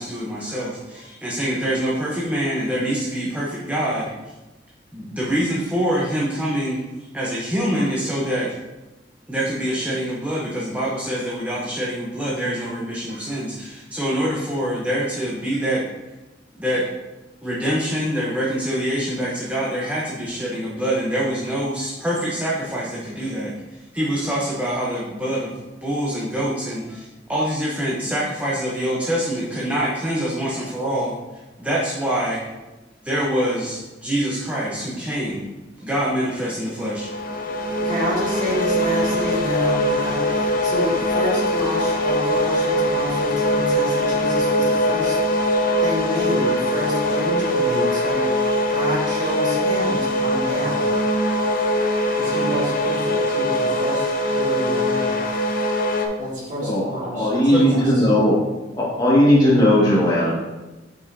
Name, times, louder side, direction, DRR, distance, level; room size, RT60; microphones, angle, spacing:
voice 1, 0.0-4.1 4.9-8.5 9.3-15.9 16.6-16.9 17.4-31.2 31.6-32.4 33.0-35.5 35.8-37.1 57.5-57.6, equal, 10° right, -6 dB, 0.9 m, -25 dB
sound 1, 36.8-56.1, left 1 dB, 50° left, 0.7 m, -22 dB
voice 2, 37.8-48.3 48.7-50.9 52.1-55.2 56.2-57.3 57.6-58.1, equal, 45° right, -6 dB, 2.1 m, -28 dB
voice 3, 57.1-58.4 58.7-60.3, equal, 25° left, -7 dB, 1.8 m, -17 dB
6.9 x 5.4 x 2.7 m, 1.1 s
head